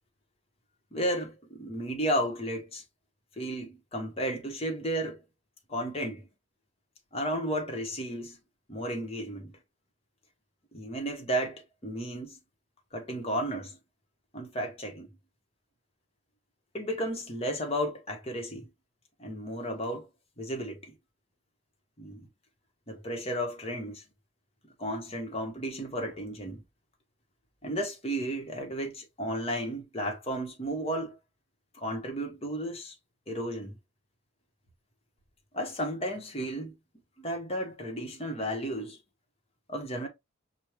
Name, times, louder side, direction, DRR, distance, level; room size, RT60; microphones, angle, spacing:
voice 1, 0.9-2.8 3.4-5.2 5.7-6.3 7.1-8.4 8.7-9.6 10.7-12.4 12.9-13.8 14.3-15.1 16.7-18.7 19.2-20.1 20.4-20.9 22.0-22.3 22.9-24.0 24.8-26.6 27.6-31.1 31.7-33.0 33.3-33.8 35.5-36.8 37.2-39.0 39.7-40.1, equal, 30° left, 1.0 m, -33 dB
6.2 x 2.2 x 3.0 m
head